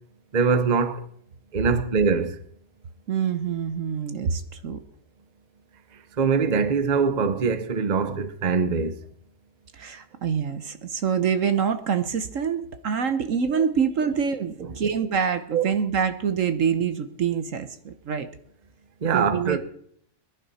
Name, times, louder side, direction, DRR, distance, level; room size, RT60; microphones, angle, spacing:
voice 1, 0.3-1.0 1.5-2.4 6.2-9.0 13.5-13.6 14.6-14.7 15.5-15.7 19.0-19.6, right 5 dB, 35° right, 0.9 m, -23 dB
voice 2, 3.1-4.8 9.7-18.3 19.1-19.6, right 7 dB, 60° right, 1.2 m, -26 dB
22.5 x 11.0 x 4.2 m
omnidirectional pair, 1.7 m